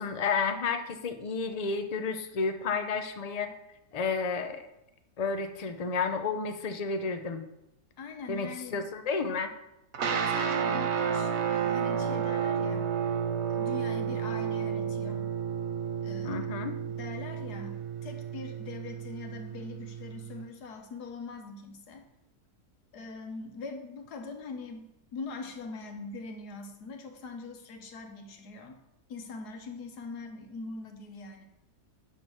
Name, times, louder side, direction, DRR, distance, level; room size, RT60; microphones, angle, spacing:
voice 1, 0.0-3.5 3.9-4.7 5.2-7.5 8.3-9.5 16.2-16.8, left 4 dB, 50° left, 7 dB, 0.4 m, -31 dB
voice 2, 8.0-8.8 10.0-15.3 16.0-16.4 17.0-22.0 22.9-28.8 29.1-31.4, left 3 dB, 85° left, 5 dB, 1.7 m, -42 dB
sound 1, 9.9-20.4, right 7 dB, 55° right, 0.9 m, -31 dB
10.0 x 3.9 x 6.3 m, 0.90 s
omnidirectional pair, 1.6 m